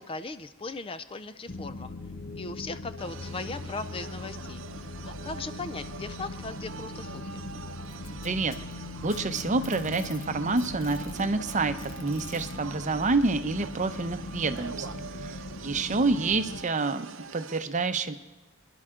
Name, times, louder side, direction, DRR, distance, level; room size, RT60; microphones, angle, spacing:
voice 1, 0.0-1.9 2.4-4.6 5.0-7.4, left 3 dB, 25° left, 12 dB, 0.4 m, -38 dB
sound 1, 1.5-16.6, left 2 dB, 50° left, 0.8 m, -40 dB
sound 2, 3.0-17.6, right 5 dB, 70° right, 0.7 m, -44 dB
Packing tape duct tape, 7.8-10.3 10.6-12.5 13.6-13.7 14.3-14.4 15.2-15.3, left 6 dB, 75° left, 1.2 m, -49 dB
voice 2, 8.2-8.5 9.0-17.1 17.3-18.1, right 3 dB, 35° right, 9 dB, 0.7 m, -28 dB
26.0 x 11.0 x 3.7 m, 1.2 s
head